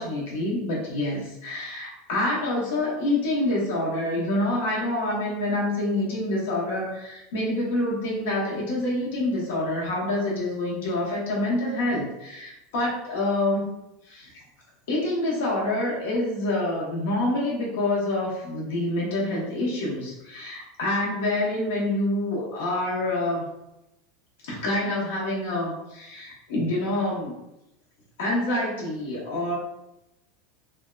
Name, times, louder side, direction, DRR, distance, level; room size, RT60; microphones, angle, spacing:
voice 1, 0.0-13.7 14.1-14.3 14.9-23.4 24.4-27.3 28.2-29.6, left 1 dB, 85° left, -5 dB, 0.9 m, -27 dB
3.4 x 2.0 x 2.3 m, 0.89 s
supercardioid pair, 180°, 0 cm